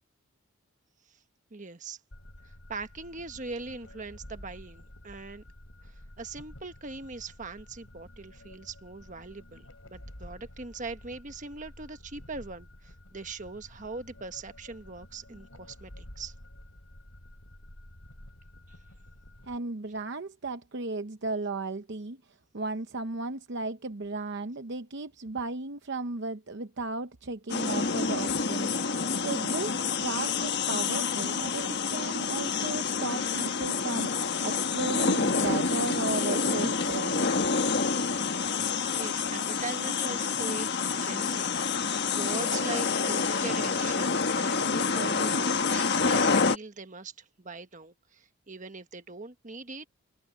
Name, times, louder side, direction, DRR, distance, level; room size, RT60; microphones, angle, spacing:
voice 1, 1.5-2.0 2.4-5.4 5.8-16.3 18.7-18.8 38.9-49.9, right 3 dB, 35° right, 1.3 m, -41 dB
sound 1, 2.1-19.6, left 1 dB, 70° left, 5.7 m, -50 dB
voice 2, 19.5-22.2 22.5-37.3, right 3 dB, 55° right, 0.8 m, -35 dB
sound 2, 27.5-46.6, left 5 dB, 50° left, 1.4 m, -28 dB
head